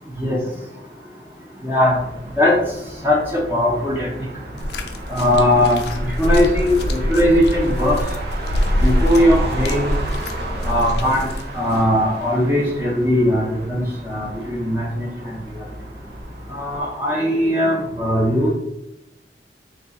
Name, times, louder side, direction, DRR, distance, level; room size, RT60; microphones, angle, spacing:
voice 1, 1.6-1.9 2.4-2.5 3.0-4.1 5.1-5.8 6.2-8.0 8.8-9.9 10.6-11.3 11.5-15.4 16.5-18.5, left 1 dB, 15° right, -4 dB, 0.7 m, -19 dB
Motor vehicle (road), 1.8-16.8, right 2 dB, 60° right, 0.7 m, -34 dB
sound 1, 4.6-11.8 12.7-12.8, equal, 70° left, 0.4 m, -24 dB
3.3 x 2.4 x 4.0 m, 0.85 s
head